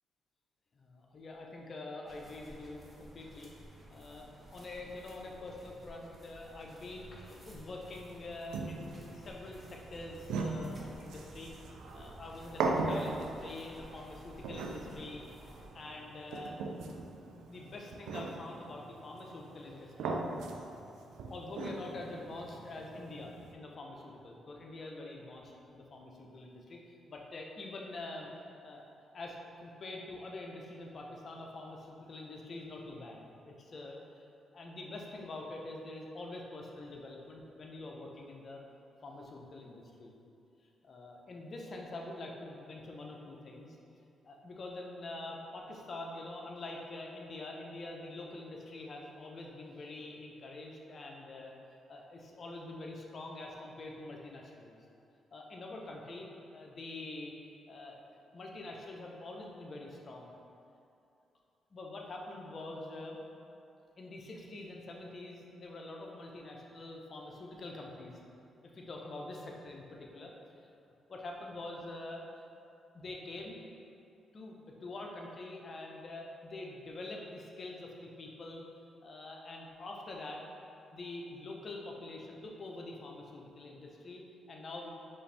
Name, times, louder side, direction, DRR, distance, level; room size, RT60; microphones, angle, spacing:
voice 1, 0.7-3.5 3.9-11.5 11.9-15.2 15.7-16.6 17.3-20.2 20.8-21.0 21.3-26.8 27.1-28.3 28.6-28.8 29.1-34.3 34.5-38.6 39.0-40.1 40.8-43.8 44.2-51.5 51.9-54.7 55.3-57.3 57.7-58.0 58.3-60.3 61.7-63.2 64.0-68.2 68.7-70.3 71.1-72.2 72.9-73.7 74.3-78.6 79.0-80.4 80.9-84.9, left 2 dB, 50° left, -1 dB, 0.6 m, -45 dB
sound 1, 2.0-15.7, right 1 dB, 30° right, 0.9 m, -54 dB
sound 2, 8.5-23.5, right 3 dB, 85° right, 0.3 m, -39 dB
5.3 x 2.6 x 3.3 m, 2.6 s
cardioid pair, 70°, 0 cm